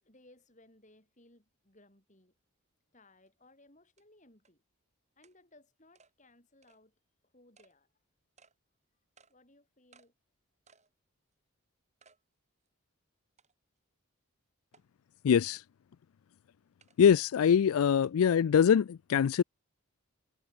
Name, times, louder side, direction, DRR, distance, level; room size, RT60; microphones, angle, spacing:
voice 1, 0.0-2.3 2.9-4.6 5.2-7.9 9.3-10.1, left 2 dB, 35° left, 5.3 m, -62 dB
sound 1, 3.3-3.4 4.0-4.1 4.5-4.6 5.2-5.4 6.0-6.1 6.6-6.8 7.6-7.7 8.4-8.6 9.2-9.3 9.9-10.1 10.7-10.9 11.3-11.4 12.0-12.2 12.7-12.8 13.4-13.8 14.7-14.8 15.4-15.6 16.8-17.0 18.0-18.1, right 5 dB, 30° right, 7.7 m, -63 dB
voice 2, 15.2-15.6 17.0-19.4, left 7 dB, 75° left, 0.3 m, -23 dB
head